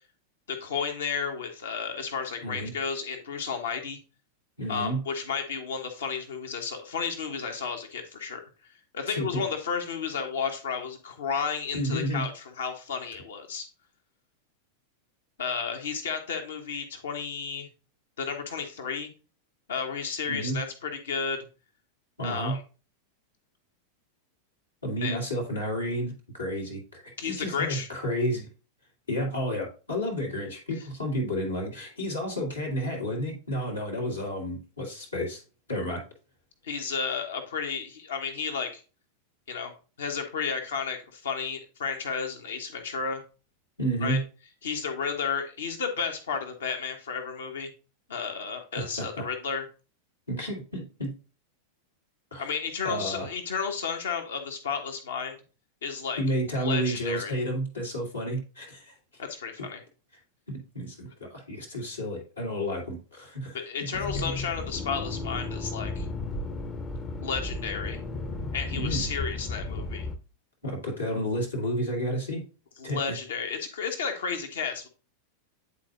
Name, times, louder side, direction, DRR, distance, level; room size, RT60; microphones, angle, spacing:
voice 1, 0.5-4.0 4.7-8.4 8.9-13.7 15.4-17.7 18.2-19.1 19.7-21.4 22.2-22.6 25.0-25.2 27.2-27.9 36.6-38.8 39.5-39.7 40.0-43.2 44.0-44.2 44.6-47.7 48.1-49.6 52.4-55.4 55.8-56.2 56.6-57.3 59.2-59.8 63.5-66.1 67.2-68.0 68.5-70.1 72.8-74.9, left 6 dB, 65° left, 5 dB, 1.2 m, -32 dB
voice 2, 2.4-2.7 4.6-5.0 9.1-9.4 11.7-12.3 20.3-20.6 22.2-22.6 24.8-28.5 29.1-35.4 35.7-36.0 43.8-44.2 48.8-49.2 50.3-51.1 52.3-52.5 52.8-53.3 56.2-58.9 59.6-59.7 60.5-63.6 68.8-69.0 70.6-72.4 72.8-73.0, equal, 80° left, -1 dB, 2.1 m, -31 dB
Accelerating revving vroom, 63.9-70.2, left 2 dB, 25° left, 0.7 m, -34 dB
10.5 x 4.1 x 2.6 m, 0.34 s
figure-of-eight pair, 90°, 0 cm